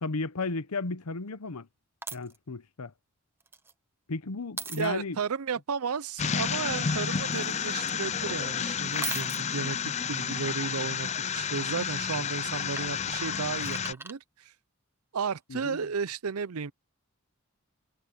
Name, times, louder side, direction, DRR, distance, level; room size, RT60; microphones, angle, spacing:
voice 1, 0.0-1.7 2.1-2.9 4.1-5.2 15.5-15.8, left 3 dB, 85° left, 0.9 m, -34 dB
sound 1, 2.0-2.4 3.4-3.7 4.6-4.9 7.3-8.0 8.9-9.4 12.8-14.1 16.1-16.2, right 4 dB, 10° right, 0.9 m, -39 dB
voice 2, 4.8-11.1 11.3-14.5 15.1-16.7, right 5 dB, 75° right, 0.6 m, -33 dB
sound 2, 6.2-13.9, left 7 dB, 30° left, 0.5 m, -31 dB
head